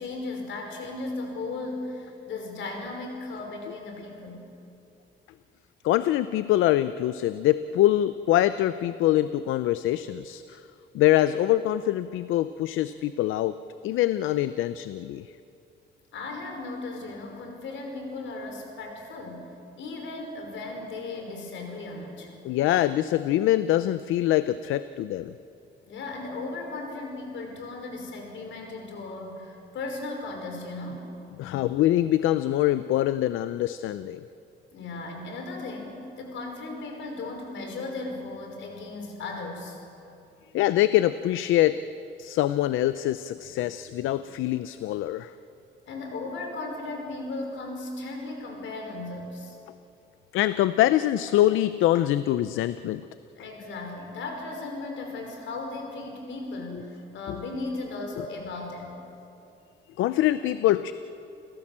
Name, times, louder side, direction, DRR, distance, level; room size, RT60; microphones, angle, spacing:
voice 1, 0.0-4.5 16.1-19.5 19.8-22.3 25.9-31.1 34.7-39.8 45.9-49.6 53.4-59.0, left 2 dB, 70° left, 3 dB, 5.5 m, -36 dB
voice 2, 5.8-10.6 10.9-13.6 13.8-15.3 22.4-25.3 31.4-34.3 40.5-41.8 42.2-45.3 50.3-53.0 57.3-57.4 60.0-60.9, left 14 dB, 90° left, 13 dB, 0.6 m, -24 dB
29.5 x 16.5 x 7.5 m, 2.7 s
cardioid pair, 90°, 20 cm